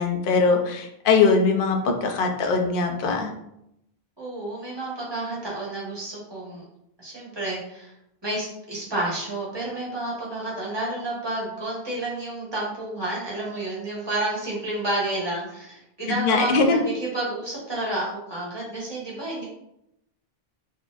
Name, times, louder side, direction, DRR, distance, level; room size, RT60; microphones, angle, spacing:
voice 1, 0.0-3.3 16.1-16.9, left 4 dB, 60° left, 4 dB, 0.7 m, -21 dB
voice 2, 4.2-6.6 7.0-7.9 8.2-19.4, right 1 dB, 25° right, -6 dB, 1.2 m, -30 dB
4.2 x 2.7 x 2.4 m, 0.81 s
omnidirectional pair, 1.0 m